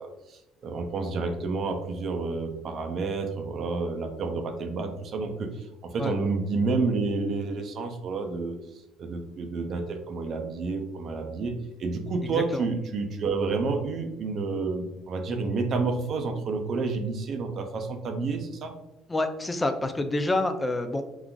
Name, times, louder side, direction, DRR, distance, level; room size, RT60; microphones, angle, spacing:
voice 1, 0.0-11.5 11.8-18.7, right 4 dB, 50° right, 5 dB, 0.5 m, -30 dB
voice 2, 12.2-12.6 19.1-21.0, left 2 dB, 15° left, 8 dB, 0.3 m, -27 dB
3.6 x 2.4 x 2.3 m, 0.92 s
cardioid pair, 115°, 0 cm